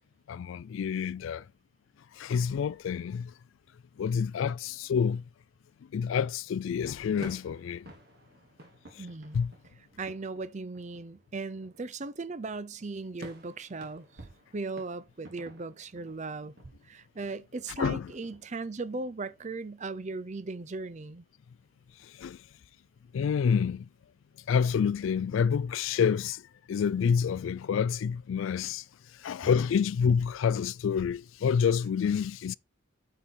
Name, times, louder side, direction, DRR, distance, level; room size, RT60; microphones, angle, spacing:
voice 1, 0.3-1.5 2.1-3.3 4.0-5.2 5.9-7.9 8.9-9.1 9.3-9.5 17.8-18.1 22.0-22.4 23.1-23.9 24.5-28.9 29.1-32.5, left 7 dB, 70° left, 0.3 m, -28 dB
sound 1, 6.1-19.4, right 1 dB, 50° right, 1.7 m, -53 dB
voice 2, 9.0-9.4 9.9-16.5 16.8-21.2, right 3 dB, 35° right, 0.5 m, -38 dB
8.8 x 4.7 x 4.2 m
head